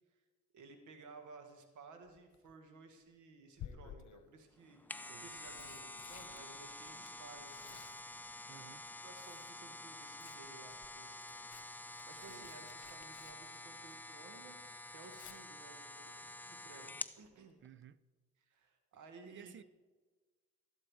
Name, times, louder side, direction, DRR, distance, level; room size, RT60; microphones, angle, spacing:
voice 1, 0.5-8.1 8.6-8.7 9.0-14.6 14.9-17.6 18.4-19.5, right 4 dB, 80° right, 1.7 m, -57 dB
Tearing, 2.1-2.5 3.6-4.3 5.1-9.6 9.9-14.2 14.5-15.4 17.2-17.5 17.8-17.9, left 10 dB, 70° left, 1.1 m, -56 dB
sound 1, 4.6-17.2 17.6-17.7, left 2 dB, 5° left, 0.5 m, -49 dB
voice 2, 8.5-8.9 12.2-12.7 17.6-18.0 19.3-19.6, right 9 dB, 40° right, 0.5 m, -56 dB
13.0 x 11.5 x 4.8 m
cardioid pair, 90°, 30 cm